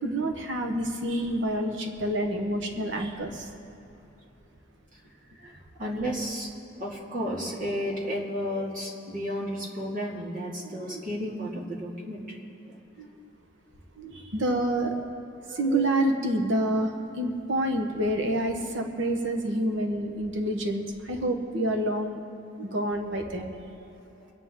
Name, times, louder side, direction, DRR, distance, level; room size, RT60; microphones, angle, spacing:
voice 1, 0.0-3.5 14.1-14.9 15.5-22.2 22.7-23.5, right 1 dB, 65° right, 3 dB, 1.2 m, -28 dB
voice 2, 5.4-6.5 6.7-13.1 14.0-14.2 15.5-15.9 22.6-22.8, equal, 45° right, -4 dB, 2.3 m, -33 dB
23.0 x 9.5 x 3.8 m, 3.0 s
head